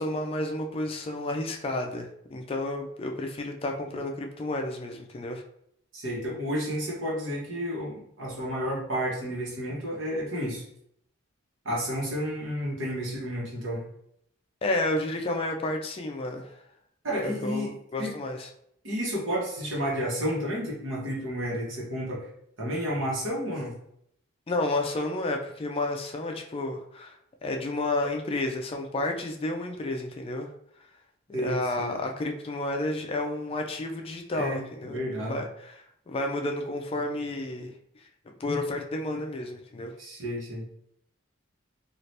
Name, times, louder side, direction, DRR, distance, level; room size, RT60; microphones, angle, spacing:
voice 1, 0.0-5.4 14.6-16.6 17.2-18.5 24.5-27.1 27.4-30.5 31.4-35.0 35.3-37.7 38.4-39.9, left 2 dB, 30° left, 3 dB, 0.3 m, -31 dB
voice 2, 5.9-10.6 11.6-13.8 17.0-17.7 18.0-18.2 18.8-22.3 22.6-23.7 31.3-31.9 34.3-35.4 40.0-40.7, equal, 70° right, -4 dB, 1.1 m, -31 dB
2.7 x 2.4 x 3.2 m, 0.71 s
head